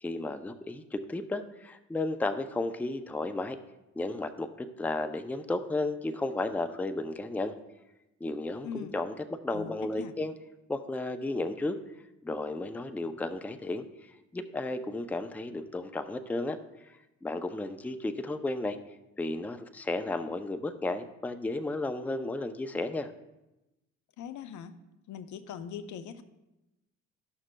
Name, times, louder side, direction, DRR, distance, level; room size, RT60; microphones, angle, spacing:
voice 1, 0.0-3.6 4.0-7.5 8.2-8.7 8.9-9.1 9.4-10.3 10.7-11.8 12.2-13.8 14.3-16.6 16.9-17.0 17.2-18.8 19.2-23.1, left 2 dB, 5° left, 9 dB, 0.4 m, -33 dB
voice 2, 8.6-8.9 9.5-10.2 24.2-24.8 25.1-26.2, left 7 dB, 75° left, 11 dB, 0.6 m, -41 dB
12.5 x 6.1 x 2.2 m, 0.97 s
cardioid pair, 90°, 30 cm